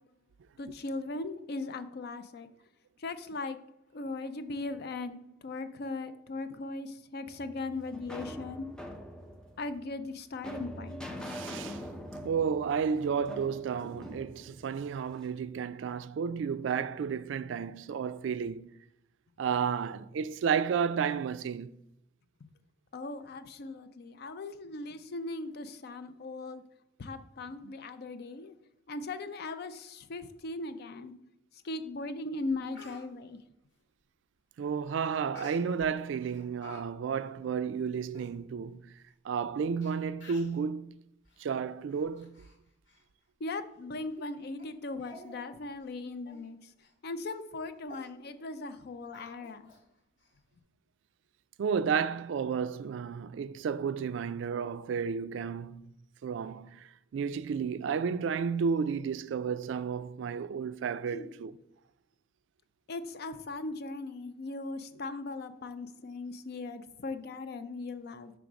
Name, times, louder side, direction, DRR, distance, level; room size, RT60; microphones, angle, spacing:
voice 1, 0.6-2.5 3.0-3.6 3.9-8.7 9.6-11.1 22.9-26.6 27.0-28.6 28.9-31.1 31.6-33.4 43.4-46.7 47.0-49.6 61.1-61.3 62.9-68.3, left 3 dB, 55° left, 0.5 m, -39 dB
sound 1, 7.3-15.4, equal, 5° left, 0.6 m, -44 dB
voice 2, 11.2-11.8 12.2-18.7 19.4-21.8 27.6-27.7 34.6-38.9 39.2-40.9 41.4-42.3 51.6-55.9 56.2-61.5, right 6 dB, 70° right, 0.3 m, -32 dB
Speech, 32.0-32.1 32.5-33.0 35.3-35.9 36.3-36.8 37.1-37.3 37.9-38.0 38.1-38.3 39.1-39.2 39.8-39.9 40.2-40.6 41.2-41.4 41.9-42.6 42.9-43.0 43.5-43.6 44.1-44.2 44.6-44.7 45.0-45.4 45.7-45.9 46.2-46.4 46.8-46.9 47.3-47.5 47.9-48.1 49.1-49.8 50.2-50.3, left 2 dB, 75° left, 2.1 m, -51 dB
6.0 x 3.4 x 5.1 m
head